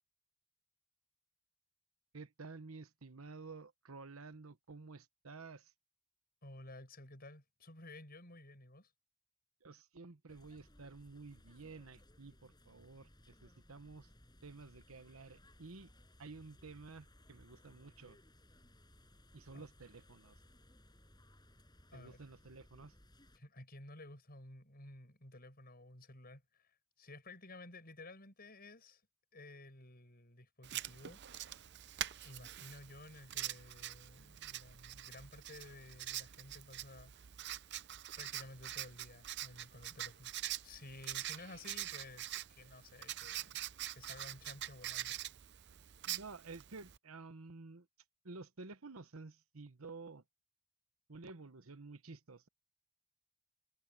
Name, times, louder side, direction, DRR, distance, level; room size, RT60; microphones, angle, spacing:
voice 1, 2.1-5.7 9.6-14.1 14.4-15.9 16.2-18.2 19.3-20.4 21.9-22.9 46.0-47.9 48.2-50.2 51.1-52.5, right 3 dB, 90° right, 1.1 m, -52 dB
voice 2, 6.4-8.9 19.5-19.6 21.9-22.2 23.3-29.0 29.3-31.5 32.2-37.1 38.2-40.3 40.6-43.6 43.9-45.2, left 2 dB, 45° left, 7.8 m, -54 dB
sound 1, 10.3-23.4, left 1 dB, 20° left, 6.8 m, -63 dB
Writing, 30.6-47.0, right 13 dB, 55° right, 0.6 m, -45 dB
head